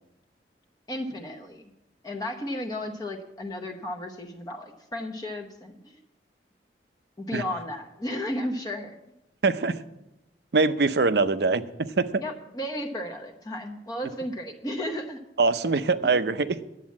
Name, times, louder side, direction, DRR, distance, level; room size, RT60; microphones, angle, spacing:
voice 1, 0.9-1.6 2.0-6.0 7.2-9.0 12.2-15.2 16.0-16.2, left 1 dB, 20° left, 2 dB, 0.9 m, -34 dB
voice 2, 9.4-9.8 10.5-12.2 15.4-16.6, right 3 dB, 70° right, 12 dB, 0.6 m, -23 dB
10.5 x 8.4 x 7.3 m, 0.90 s
head